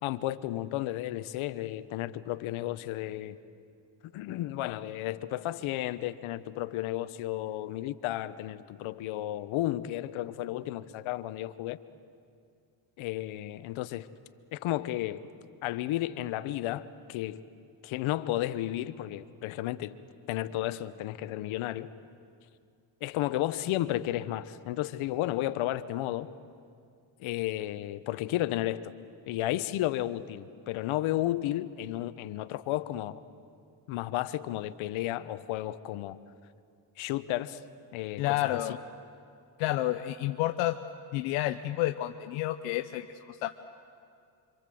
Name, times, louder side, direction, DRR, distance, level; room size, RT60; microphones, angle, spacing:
voice 1, 0.0-3.4 4.1-11.8 13.0-14.1 14.5-15.3 15.6-17.4 17.8-19.9 20.3-21.9 23.0-26.3 27.2-28.9 29.3-33.2 33.9-36.2 37.0-37.6 37.9-38.6, left 14 dB, 75° left, 13 dB, 1.1 m, -33 dB
voice 2, 38.2-38.8 39.6-40.8 41.1-43.5, left 15 dB, 90° left, 8 dB, 0.8 m, -30 dB
26.5 x 25.5 x 7.8 m, 2.3 s
supercardioid pair, 75°, 49 cm